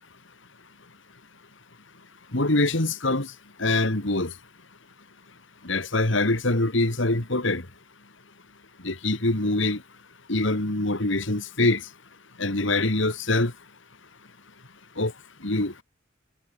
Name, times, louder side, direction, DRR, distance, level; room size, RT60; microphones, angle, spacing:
voice 1, 2.3-3.3 3.6-4.3 5.6-7.6 8.8-9.8 10.3-11.8 12.4-13.5 15.0-15.1 15.4-15.7, left 2 dB, 70° left, 2.5 m, -24 dB
head